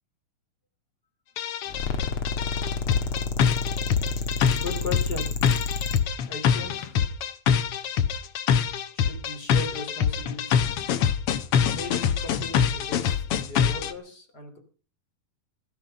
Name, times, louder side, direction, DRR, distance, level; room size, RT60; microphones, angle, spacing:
sound 1, 1.4-13.9, left 8 dB, 90° left, 1.3 m, -24 dB
sound 2, 1.7-6.0, left 4 dB, 50° left, 1.9 m, -29 dB
voice 1, 4.6-5.3 6.3-7.1 8.9-10.6 11.7-14.6, left 3 dB, 30° left, 4 dB, 3.5 m, -37 dB
16.0 x 14.0 x 5.3 m, 0.39 s
omnidirectional pair, 4.1 m